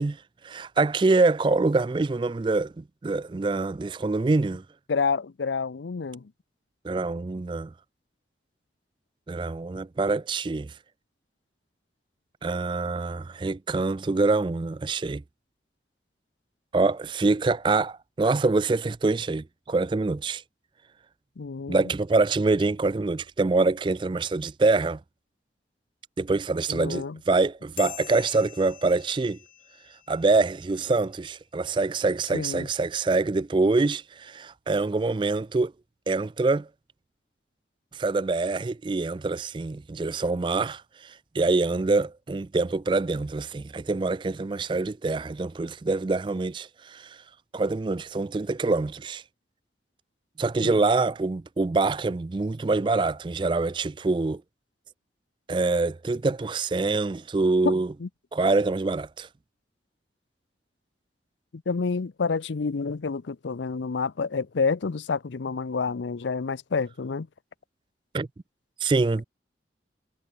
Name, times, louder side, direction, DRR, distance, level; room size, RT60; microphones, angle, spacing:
voice 1, 0.0-4.6 6.8-7.7 9.3-10.8 12.4-15.2 16.7-20.4 21.7-25.0 26.2-29.4 30.1-35.7 36.1-36.7 37.9-47.2 47.5-49.2 50.4-54.4 55.5-57.9 58.3-59.3 68.1-68.3 68.8-69.2, right 3 dB, 25° right, 0.3 m, -25 dB
voice 2, 4.9-6.3 21.4-21.8 26.7-27.2 32.3-32.7 50.6-50.8 57.6-57.7 58.0-58.1 61.5-67.3, left 4 dB, 85° left, 0.6 m, -28 dB
sound 1, 27.8-30.6, left 14 dB, 50° left, 2.4 m, -44 dB
head